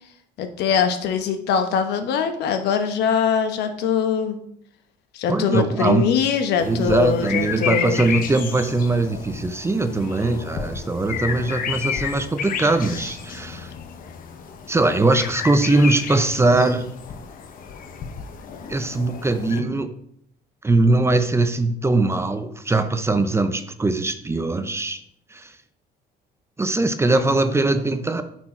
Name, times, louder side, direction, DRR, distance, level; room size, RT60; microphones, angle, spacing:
voice 1, 0.4-4.4 5.1-8.0, left 7 dB, 80° left, 7 dB, 1.1 m, -22 dB
voice 2, 5.3-6.1 6.7-13.7 14.7-16.9 18.7-19.9 20.6-25.0 25.3-25.5 26.6-28.2, right 2 dB, 15° right, 9 dB, 0.6 m, -21 dB
sound 1, 6.6-19.6, left 7 dB, 55° left, 1.0 m, -32 dB
9.6 x 4.6 x 4.4 m, 0.69 s
cardioid pair, 110°, 17 cm